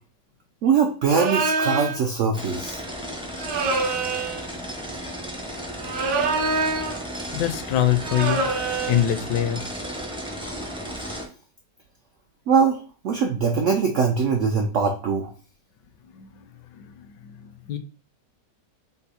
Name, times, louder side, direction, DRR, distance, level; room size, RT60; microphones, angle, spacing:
voice 1, 0.6-2.8 12.5-12.8 13.0-15.3, right 5 dB, 85° right, 4 dB, 0.6 m, -22 dB
sound 1, 1.1-2.0 3.4-4.4 5.8-7.0 8.0-9.1, right 3 dB, 70° right, 1.2 m, -25 dB
sound 2, 2.3-11.3, equal, 10° right, 0.3 m, -34 dB
voice 2, 7.3-8.5 8.9-9.6 16.1-17.8, left 11 dB, 80° left, 8 dB, 1.2 m, -25 dB
5.5 x 2.0 x 4.1 m, 0.40 s
omnidirectional pair, 1.9 m